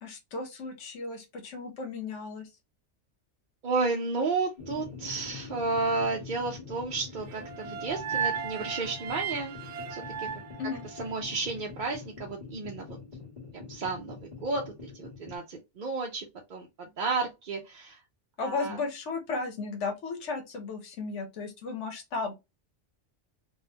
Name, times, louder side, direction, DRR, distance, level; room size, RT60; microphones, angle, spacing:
voice 1, 0.0-2.5 10.6-10.8 18.4-22.3, left 4 dB, 90° left, 1.2 m, -35 dB
voice 2, 3.6-9.5 9.9-10.3 11.0-12.8 13.5-16.2 16.5-16.7 17.0-18.0 18.4-18.8, right 3 dB, 50° right, 0.7 m, -32 dB
sound 1, 4.6-15.4, left 5 dB, 40° left, 1.5 m, -45 dB
sound 2, 7.3-11.5, right 7 dB, 80° right, 0.9 m, -35 dB
3.5 x 2.6 x 2.8 m
omnidirectional pair, 1.2 m